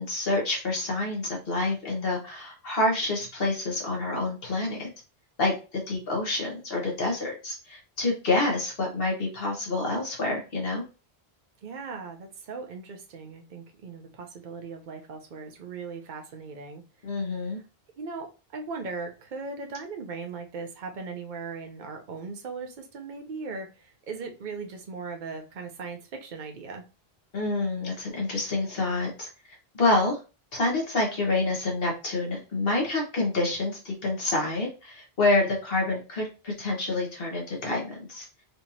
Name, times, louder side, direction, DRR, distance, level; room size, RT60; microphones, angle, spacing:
voice 1, 0.0-4.9 5.4-10.8 17.0-17.6 27.3-30.2 30.5-38.3, left 2 dB, 65° left, 1.5 m, -27 dB
voice 2, 11.6-16.8 17.3-17.6 18.0-26.9, right 4 dB, 55° right, 0.8 m, -38 dB
4.4 x 2.8 x 2.7 m
omnidirectional pair, 1.0 m